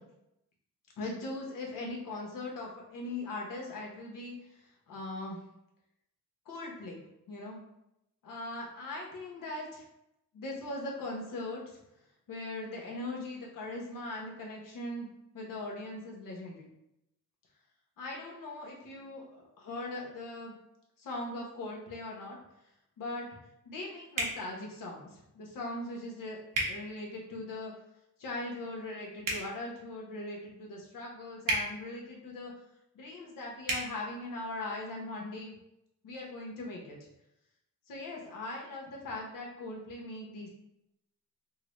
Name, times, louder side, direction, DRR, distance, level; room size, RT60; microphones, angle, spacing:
voice 1, 1.0-4.3 4.9-5.4 6.5-7.0 7.3-7.6 8.2-9.8 10.3-11.6 12.3-15.1 15.3-16.7 18.0-20.5 21.0-22.4 23.0-23.3 23.6-26.4 26.6-27.7 28.2-32.5 32.9-35.6 36.0-37.0 37.9-40.5, left 2 dB, 85° left, -1 dB, 1.0 m, -40 dB
sound 1, 24.1-24.4 26.5-26.7 29.2-29.4 31.4-31.6 33.6-33.8, right 2 dB, 80° right, 1.0 m, -30 dB
3.7 x 2.1 x 3.0 m, 0.85 s
cardioid pair, 90°, 32 cm